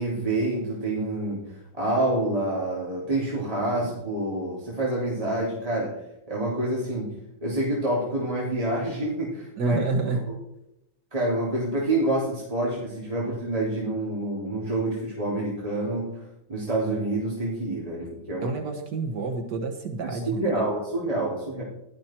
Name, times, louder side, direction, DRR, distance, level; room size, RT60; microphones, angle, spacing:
voice 1, 0.0-6.0 6.3-9.8 11.1-16.2 16.5-18.5 20.0-21.6, right 1 dB, 20° right, -5 dB, 3.3 m, -27 dB
voice 2, 9.6-10.3 18.4-20.7, right 3 dB, 75° right, 4 dB, 2.0 m, -28 dB
16.0 x 12.5 x 4.5 m, 0.86 s
omnidirectional pair, 1.8 m